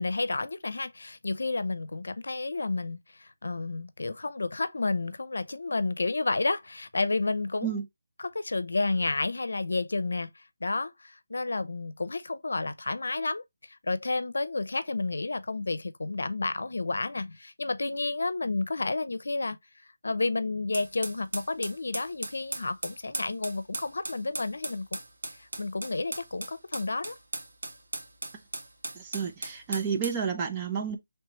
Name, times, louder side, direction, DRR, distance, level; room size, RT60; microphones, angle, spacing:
voice 1, 0.0-7.8 8.2-19.6 20.0-25.0 25.4-27.2, left 3 dB, 85° left, 0.6 m, -31 dB
sound 1, 20.7-30.2, right 2 dB, 75° right, 1.4 m, -38 dB
voice 2, 28.9-31.0, right 7 dB, 15° right, 0.5 m, -31 dB
4.5 x 3.2 x 3.1 m
hypercardioid pair, 175°, 0 cm